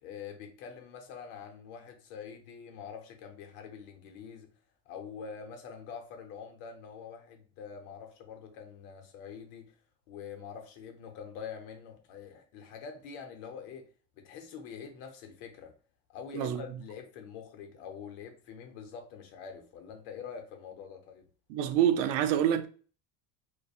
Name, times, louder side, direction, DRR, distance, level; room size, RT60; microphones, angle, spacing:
voice 1, 0.0-4.5 4.9-9.7 10.1-13.9 14.1-15.7 16.1-21.2, left 6 dB, 65° left, 0.7 m, -45 dB
voice 2, 21.5-22.7, right 10 dB, 80° right, 0.5 m, -26 dB
2.5 x 2.2 x 2.4 m
supercardioid pair, 140°, 37 cm